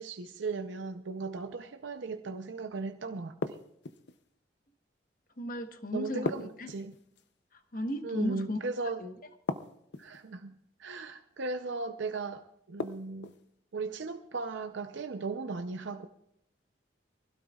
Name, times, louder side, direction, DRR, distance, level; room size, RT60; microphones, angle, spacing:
voice 1, 0.0-3.6 5.9-6.9 8.0-9.0 10.0-10.5 10.8-13.3 13.7-16.1, right 3 dB, 75° right, 7 dB, 0.6 m, -37 dB
sound 1, 3.4-4.2 6.3-7.3 9.5-10.2 12.8-13.4, left 3 dB, 65° left, 0.7 m, -36 dB
voice 2, 5.4-6.7 7.5-8.6 9.0-9.1, left 1 dB, 45° left, 7 dB, 1.1 m, -35 dB
23.0 x 16.5 x 2.4 m, 0.74 s
head